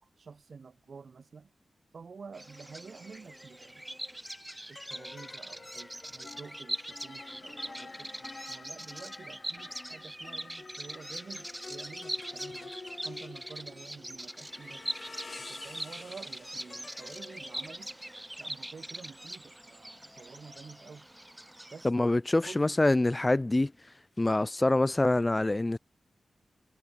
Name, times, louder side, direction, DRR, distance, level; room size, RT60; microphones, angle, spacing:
voice 1, 0.2-1.5 1.9-3.8 4.7-12.7 13.0-15.0 15.4-17.9 18.4-21.1 21.7-21.9 22.5-22.6, right 5 dB, 55° right, 6.0 m, -49 dB
Bird vocalization bird call bird song, 2.3-21.9, right 1 dB, 10° right, 2.9 m, -42 dB
sound 1, 3.1-3.3 4.2-21.0, left 3 dB, 35° left, 2.6 m, -49 dB
voice 2, 21.8-23.7 24.2-25.8, left 2 dB, 20° left, 0.3 m, -25 dB
wide cardioid pair, 130°, 0 cm